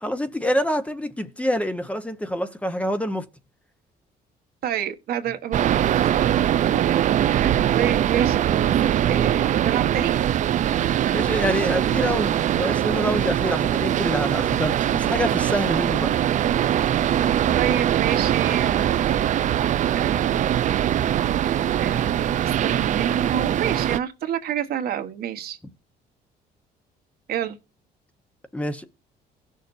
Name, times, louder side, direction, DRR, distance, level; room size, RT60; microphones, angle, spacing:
voice 1, 0.0-3.2 6.6-6.8 11.1-16.1 28.5-28.8, equal, 10° left, 1.0 m, -26 dB
voice 2, 4.6-6.4 6.6-8.7 9.1-10.1 17.5-19.5 20.0-20.7 21.3-25.6 27.3-27.6, right 9 dB, 65° right, 1.3 m, -29 dB
sound 1, 5.5-24.0, right 10 dB, 45° right, 0.4 m, -22 dB
17.0 x 6.5 x 2.6 m
cardioid pair, 110°, 17 cm